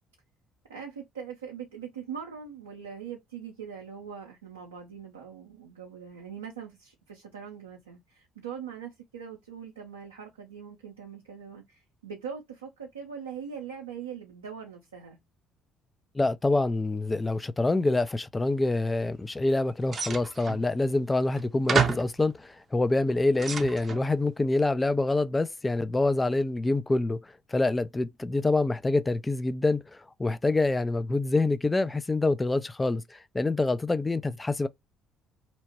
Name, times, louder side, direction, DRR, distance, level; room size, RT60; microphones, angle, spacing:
voice 1, 0.7-15.2, right 7 dB, 90° right, 0.5 m, -41 dB
voice 2, 16.1-27.2 27.5-29.8 30.2-34.7, left 2 dB, 20° left, 0.3 m, -26 dB
sound 1, 19.9-20.6 21.4-21.5 21.7-22.2 22.9-24.1, right 5 dB, 40° right, 0.5 m, -29 dB
2.8 x 2.1 x 2.8 m
hypercardioid pair, 55°, 0 cm